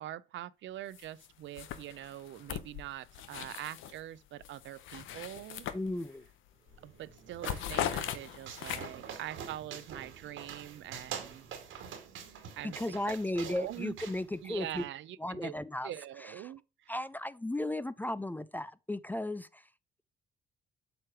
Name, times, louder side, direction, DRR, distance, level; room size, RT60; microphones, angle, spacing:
voice 1, 0.0-5.7 6.8-11.5 12.6-12.8 13.1-14.0 14.4-15.5 15.8-16.9, right 13 dB, 70° right, 0.5 m, -44 dB
sound 1, 0.9-1.3 1.5-4.0 4.4-6.3 6.7-6.9 7.2-9.1, left 10 dB, 85° left, 0.7 m, -39 dB
voice 2, 5.7-6.2 12.6-14.8 15.2-15.9 16.2-16.3 16.9-19.6, left 1 dB, 10° left, 0.3 m, -35 dB
sound 2, 6.7-14.8, right 7 dB, 85° right, 2.0 m, -46 dB
7.8 x 3.2 x 6.0 m
cardioid pair, 90°, 20 cm